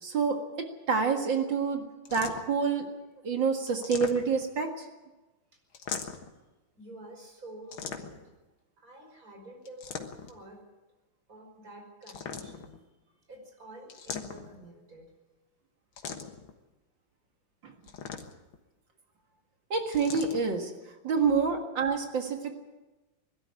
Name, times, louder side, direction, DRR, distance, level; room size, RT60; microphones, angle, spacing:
voice 1, 0.0-2.9 3.2-4.9 17.6-17.7 19.7-20.7 21.0-22.5, right 5 dB, 65° right, 3 dB, 2.5 m, -28 dB
sound 1, 2.0-2.6 3.7-4.6 5.7-6.4 7.7-8.3 9.6-10.4 12.0-12.8 13.9-14.7 16.0-16.5 17.8-18.6 19.9-20.4, left 6 dB, 75° left, 2.2 m, -40 dB
voice 2, 6.7-8.2 8.8-10.6 11.3-12.8 13.3-15.1, right 1 dB, 40° right, 1 dB, 6.0 m, -49 dB
21.0 x 13.0 x 9.7 m, 1.1 s
omnidirectional pair, 2.2 m